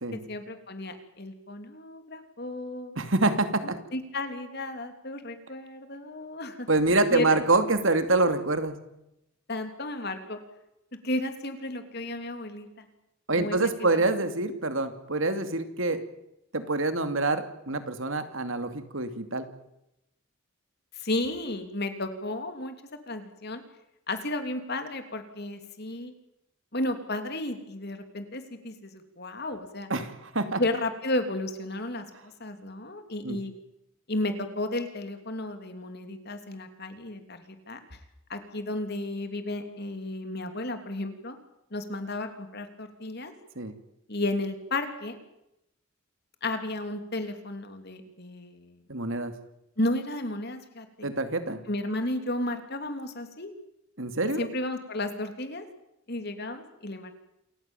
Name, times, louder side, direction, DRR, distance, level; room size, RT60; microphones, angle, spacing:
voice 1, 0.1-3.0 3.6-6.7 7.1-7.3 9.5-10.4 11.0-12.9 13.4-14.0 20.9-22.7 23.1-23.6 24.1-26.1 26.7-29.9 30.6-33.5 34.1-37.8 38.3-41.4 41.7-43.3 44.1-45.2 46.4-48.8 49.8-51.1 51.7-53.5 54.4-55.7 56.1-57.1, left 2 dB, 50° left, 7 dB, 3.1 m, -33 dB
voice 2, 3.0-3.8 6.7-8.8 13.3-16.0 16.5-19.5 29.9-30.6 33.2-33.4 43.6-43.8 48.9-49.3 51.0-51.6 54.0-54.5, right 2 dB, 65° right, 8 dB, 2.6 m, -26 dB
28.0 x 15.5 x 9.1 m, 0.85 s
head